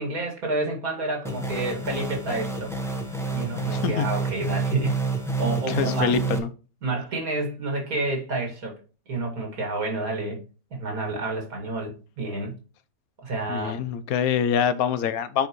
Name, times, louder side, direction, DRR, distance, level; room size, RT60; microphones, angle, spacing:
voice 1, 0.0-2.7 3.3-5.0 5.4-6.1 6.8-8.7 9.1-10.4 10.7-12.5 13.2-13.8, right 2 dB, 85° right, 2.7 m, -29 dB
sound 1, 1.2-6.4, right 3 dB, ahead, 1.0 m, -28 dB
voice 2, 3.7-4.1 5.7-6.5 13.5-15.5, left 8 dB, 85° left, 1.2 m, -25 dB
9.1 x 4.7 x 3.0 m
omnidirectional pair, 1.5 m